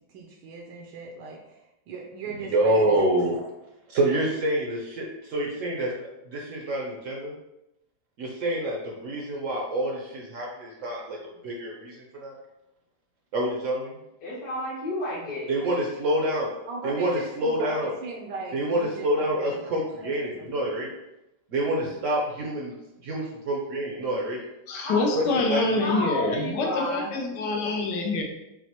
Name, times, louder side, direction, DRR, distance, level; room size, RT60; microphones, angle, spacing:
voice 1, 0.1-3.5 16.7-20.5, right 3 dB, 80° right, -1 dB, 1.3 m, -39 dB
voice 2, 2.4-3.3 3.9-7.3 8.2-11.2 11.4-12.3 13.3-14.0 15.5-16.5 16.8-17.9 18.5-20.9 21.5-22.7 23.0-24.4 25.1-25.9, right 1 dB, 65° right, -2 dB, 0.8 m, -27 dB
voice 3, 14.2-15.5 24.7-25.0 25.8-27.1, left 1 dB, 60° left, -7 dB, 1.5 m, -31 dB
voice 4, 24.7-28.2, left 3 dB, 80° left, 2 dB, 1.3 m, -26 dB
6.1 x 2.1 x 2.9 m, 0.91 s
omnidirectional pair, 1.9 m